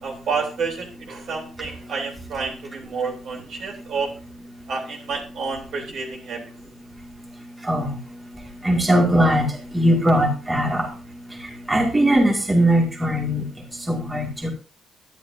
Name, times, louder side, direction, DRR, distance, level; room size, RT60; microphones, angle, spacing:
voice 1, 0.0-4.1 4.7-6.4, right 4 dB, 65° right, 0 dB, 3.3 m, -29 dB
voice 2, 7.6-8.0 8.6-9.5 9.7-10.9 11.7-13.4 13.9-14.5, equal, 10° right, -2 dB, 2.4 m, -19 dB
10.5 x 10.5 x 2.7 m, 0.34 s
cardioid pair, 125°, 0 cm